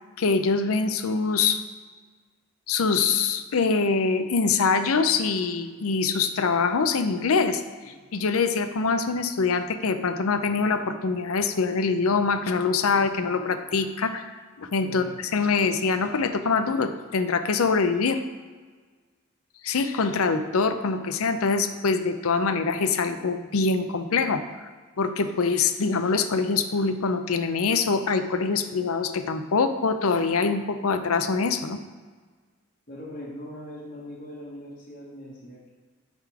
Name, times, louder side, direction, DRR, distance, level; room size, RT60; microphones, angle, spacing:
voice 1, 0.2-1.6 2.7-7.6 7.9-14.3 14.6-18.2 19.6-24.4 25.0-31.8, left 4 dB, 80° left, 9 dB, 0.6 m, -24 dB
voice 2, 32.9-35.7, left 1 dB, 40° left, -6 dB, 1.2 m, -40 dB
9.0 x 3.7 x 4.8 m, 1.5 s
head